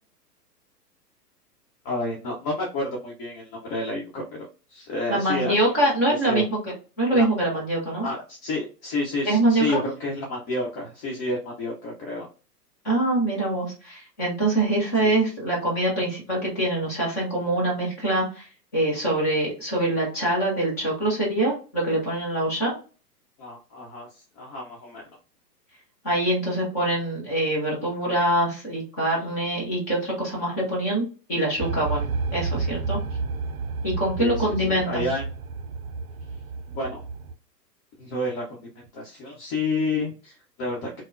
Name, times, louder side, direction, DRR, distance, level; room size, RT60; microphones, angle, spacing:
voice 1, 1.8-5.5 6.2-6.5 7.1-7.3 8.0-12.3 15.0-15.1 23.4-25.0 34.2-35.2 36.7-37.0 38.0-41.0, left 2 dB, 30° left, -2 dB, 0.8 m, -30 dB
voice 2, 5.1-6.6 7.0-8.1 9.3-9.8 12.8-18.5 18.7-22.8 26.0-32.1 32.3-33.0 33.8-35.1, right 1 dB, 10° left, -4 dB, 0.3 m, -24 dB
sound 1, 31.6-37.3, right 4 dB, 60° right, 0.6 m, -31 dB
3.5 x 2.0 x 2.4 m, 0.34 s
hypercardioid pair, 120°, 49 cm